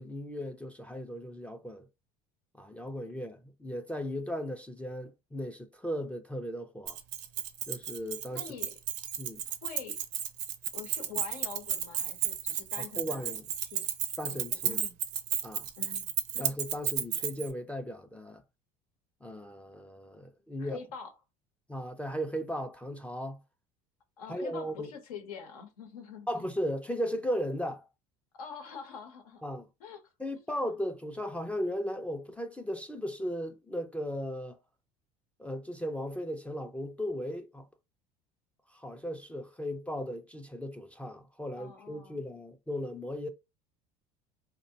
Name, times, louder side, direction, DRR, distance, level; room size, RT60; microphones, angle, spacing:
voice 1, 0.0-1.9 2.5-7.0 7.7-8.5 9.2-9.4 12.8-13.5 14.2-14.8 15.4-15.7 16.4-18.4 19.2-20.8 21.7-23.4 24.3-24.9 26.3-27.8 29.4-29.7 30.2-34.6 35.4-37.7 38.7-43.3, equal, 5° left, 0.3 m, -36 dB
Keys jangling, 6.9-17.5, right 10 dB, 65° right, 0.5 m, -33 dB
voice 2, 8.3-8.7 9.6-10.0 10.7-13.3 13.6-13.8 14.3-15.0 15.8-16.5 20.6-21.1 24.2-26.3 28.3-29.4 29.8-30.0 30.3-30.5 41.5-42.2, left 6 dB, 90° left, 0.7 m, -45 dB
2.4 x 2.1 x 2.7 m
hypercardioid pair, 85°, 19 cm